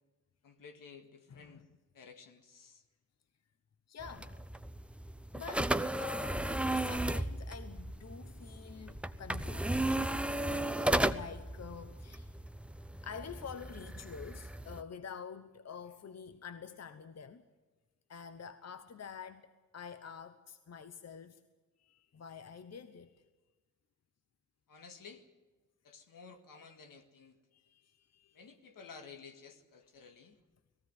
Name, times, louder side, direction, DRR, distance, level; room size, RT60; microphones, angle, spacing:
voice 1, 0.4-1.6 1.9-2.8 24.7-25.2 25.8-27.4 28.3-30.4, left 5 dB, 80° left, 2.1 m, -53 dB
voice 2, 1.3-1.7 3.9-4.4 5.3-9.8 10.8-12.3 13.0-17.4 18.1-21.4 21.8-23.2 27.5-28.4, left 6 dB, 50° left, 1.0 m, -48 dB
sound 1, 4.0-14.8, right 1 dB, 5° right, 0.8 m, -35 dB
18.5 x 16.0 x 9.4 m
cardioid pair, 65°, 33 cm